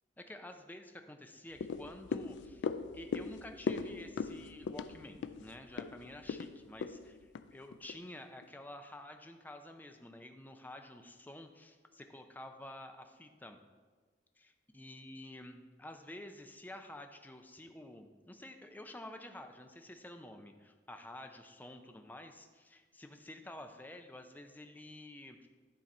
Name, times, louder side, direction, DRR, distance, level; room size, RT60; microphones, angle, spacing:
voice 1, 0.2-2.7 2.9-13.6 14.4-25.5, left 1 dB, 10° left, 6 dB, 0.5 m, -50 dB
sound 1, 1.6-8.0 8.4-8.5, left 5 dB, 85° left, 0.3 m, -40 dB
10.0 x 3.9 x 4.2 m, 1.4 s
head